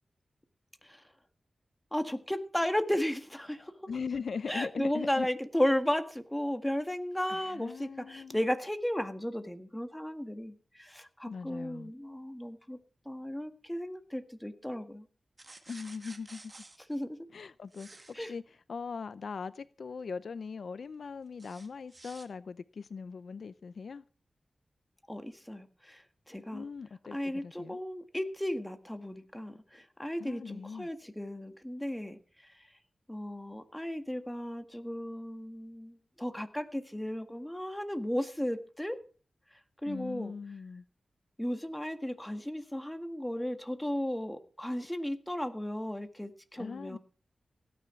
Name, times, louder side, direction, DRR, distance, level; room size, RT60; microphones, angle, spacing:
voice 1, 0.8-1.1 1.9-3.9 4.5-12.8 13.1-15.1 16.9-17.2 18.1-18.3 25.1-26.6 27.1-32.8 33.1-39.0 39.5-40.3 41.4-47.0, left 1 dB, 5° left, 1.7 m, -35 dB
voice 2, 3.9-5.3 7.3-8.4 11.3-11.9 15.7-16.5 17.3-18.4 18.7-24.0 26.5-27.8 30.2-30.9 39.8-40.9 46.6-47.0, left 5 dB, 70° left, 0.6 m, -40 dB
sound 1, 15.4-16.8 17.7-18.1 21.4-22.3, right 2 dB, 30° right, 2.0 m, -51 dB
17.0 x 9.4 x 5.9 m
wide cardioid pair, 85°, 0 cm